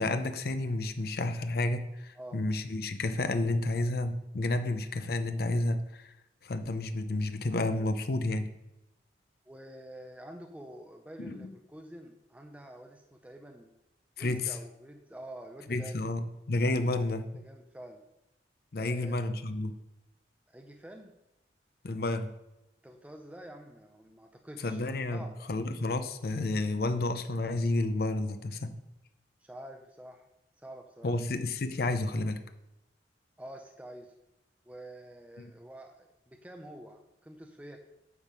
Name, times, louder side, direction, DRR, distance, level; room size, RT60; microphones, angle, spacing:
voice 1, 0.0-6.1 6.4-8.5 11.2-11.5 14.2-14.6 15.7-17.4 18.7-19.7 21.8-22.3 24.6-25.2 25.5-28.7 31.0-32.4 35.4-35.5, left 2 dB, 60° left, 9 dB, 0.6 m, -31 dB
voice 2, 9.5-13.7 14.2-16.1 17.3-18.0 18.8-19.2 20.5-21.1 22.8-24.8 25.1-25.5 29.4-30.3 30.6-31.2 33.4-34.1 34.7-37.8, right 1 dB, 10° right, 3 dB, 0.5 m, -48 dB
9.7 x 3.5 x 6.1 m, 0.90 s
head